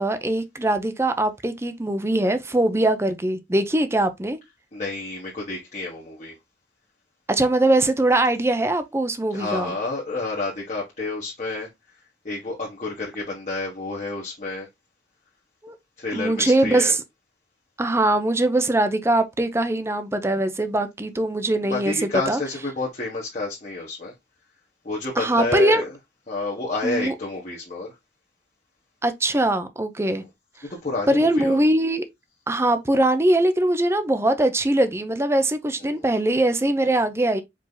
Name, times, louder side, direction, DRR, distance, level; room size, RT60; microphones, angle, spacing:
voice 1, 0.0-4.4 7.3-9.7 15.6-15.7 16.1-17.0 17.8-21.9 22.3-22.4 25.2-25.8 26.8-27.1 29.0-30.2 31.1-32.0 32.5-37.4, right 1 dB, 15° right, 0.6 m, -21 dB
voice 2, 4.7-6.3 9.3-14.7 16.0-17.0 21.6-24.1 24.8-25.9 26.3-27.9 30.2-30.3 30.6-31.6 35.8-36.1, left 3 dB, 40° left, 1.2 m, -30 dB
4.9 x 2.8 x 3.8 m
head